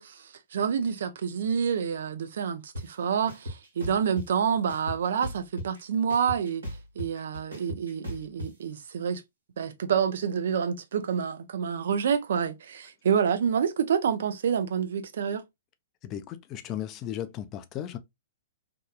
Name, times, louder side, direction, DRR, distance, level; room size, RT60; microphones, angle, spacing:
voice 1, 0.0-6.6 7.0-9.2 9.6-15.4, right 7 dB, 65° right, 0.5 m, -28 dB
sound 1, 2.7-2.8 3.3-4.3 4.7-5.8 6.1-8.5, equal, 85° right, 1.2 m, -37 dB
voice 2, 16.0-18.0, left 11 dB, 30° left, 0.4 m, -35 dB
2.7 x 2.3 x 2.2 m
figure-of-eight pair, 110°, 0 cm